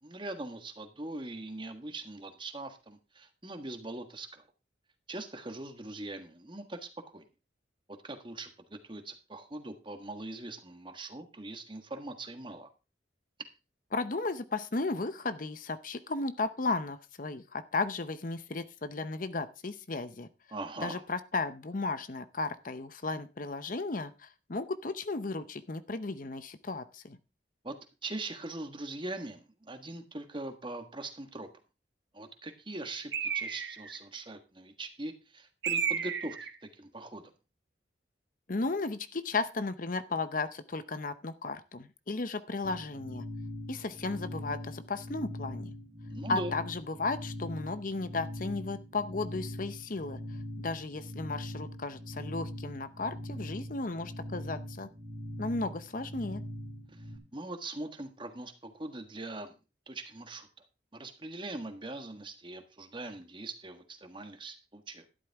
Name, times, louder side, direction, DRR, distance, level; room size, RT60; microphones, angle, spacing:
voice 1, 0.0-4.4 5.1-7.2 7.9-12.7 20.5-21.0 27.6-27.8 28.0-31.5 32.1-37.3 46.0-46.5 56.9-57.1 57.3-59.5 59.9-60.5 60.9-65.0, right 2 dB, 25° right, 7 dB, 1.5 m, -41 dB
voice 2, 13.9-20.3 20.8-27.2 38.5-43.3 43.7-45.7 46.3-54.9 55.4-56.4, left 3 dB, 45° left, 12 dB, 0.7 m, -35 dB
Bird, 33.1-34.0 35.6-36.6, right 7 dB, 70° right, 1.4 m, -32 dB
sound 1, 42.6-57.2, equal, 40° right, 3.8 m, -42 dB
12.5 x 11.0 x 3.5 m, 0.30 s
head